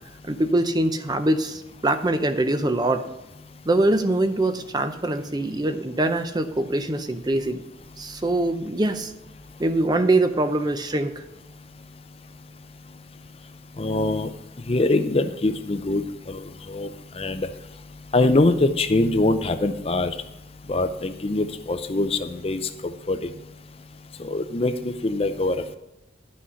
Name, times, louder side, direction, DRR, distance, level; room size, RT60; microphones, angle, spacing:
voice 1, 0.2-3.1 3.7-7.6 8.0-9.1 9.6-11.2, right 2 dB, 20° right, 9 dB, 0.5 m, -23 dB
voice 2, 13.8-14.3 14.7-16.9 17.2-17.5 18.1-20.1 20.7-23.3 24.2-25.6, left 2 dB, 30° left, 10 dB, 0.5 m, -23 dB
11.0 x 6.3 x 5.7 m, 0.95 s
head